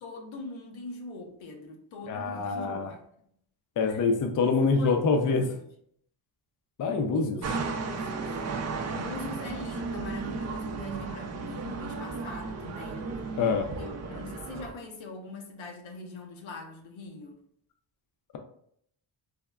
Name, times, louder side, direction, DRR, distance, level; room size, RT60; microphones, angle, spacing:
voice 1, 0.0-3.0 3.9-4.1 4.4-5.6 7.1-8.5 8.9-13.2 13.7-17.4, left 3 dB, 80° left, 0.7 m, -42 dB
voice 2, 2.1-2.9 3.8-5.4 6.8-7.4 13.4-13.7, left 4 dB, 45° left, 0.5 m, -25 dB
sound 1, 7.4-14.7, right 4 dB, 35° right, 0.4 m, -34 dB
3.5 x 2.1 x 2.3 m
cardioid pair, 75°, 47 cm